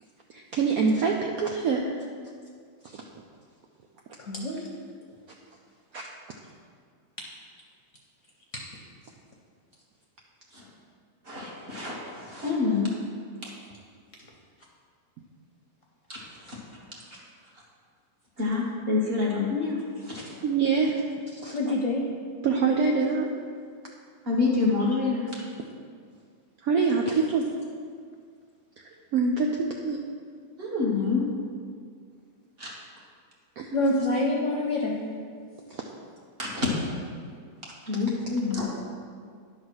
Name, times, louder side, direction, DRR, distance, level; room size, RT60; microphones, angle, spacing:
voice 1, 0.3-2.0 2.9-3.0 5.9-6.0 20.4-21.0 21.3-21.7 22.4-23.3 26.6-27.5 29.1-30.0 33.6-34.0 35.7-35.8, right 4 dB, 70° right, 1 dB, 0.9 m, -25 dB
voice 2, 4.2-4.6 21.5-22.0 33.7-35.0, left 2 dB, 55° left, -2 dB, 1.0 m, -26 dB
voice 3, 11.2-12.9 16.1-16.6 17.1-17.2 18.4-20.4 24.2-25.4 30.6-31.3 32.6-32.7 36.4-36.7 37.9-38.7, left 4 dB, 35° right, -5 dB, 1.7 m, -27 dB
10.5 x 4.0 x 6.2 m, 2.1 s
omnidirectional pair, 2.0 m